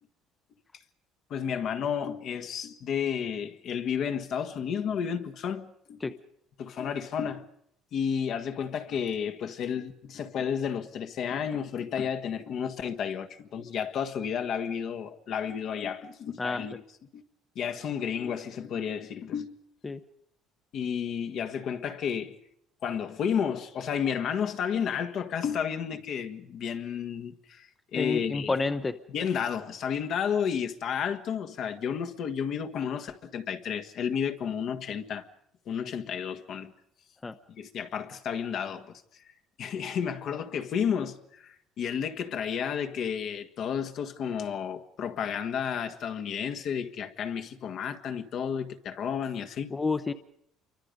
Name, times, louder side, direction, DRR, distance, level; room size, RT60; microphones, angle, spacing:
voice 1, 1.3-6.1 6.6-7.4 7.9-16.8 17.1-17.2 17.5-19.5 20.7-22.4 22.8-28.6 29.1-35.2 35.7-36.7 37.6-39.0 39.6-49.7, left 7 dB, 60° left, 1.6 m, -32 dB
voice 2, 28.0-29.0 37.2-37.4 49.7-50.1, left 3 dB, 20° left, 0.8 m, -29 dB
28.0 x 24.0 x 5.3 m
cardioid pair, 110°, 0 cm